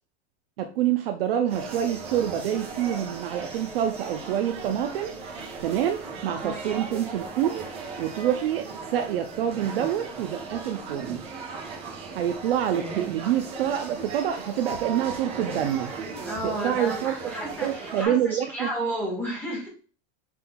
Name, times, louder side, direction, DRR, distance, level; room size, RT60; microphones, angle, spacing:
voice 1, 0.6-5.1 5.6-7.7 8.0-11.2 12.1-15.9 16.4-17.3 17.6-18.7, right 10 dB, 50° right, 6 dB, 0.5 m, -27 dB
sound 1, 1.5-18.1, right 4 dB, 15° right, 0.8 m, -37 dB
voice 2, 6.4-6.7 16.2-19.7, right 1 dB, 5° left, -3 dB, 1.7 m, -32 dB
5.9 x 3.7 x 2.3 m, 0.38 s
supercardioid pair, 170°, 37 cm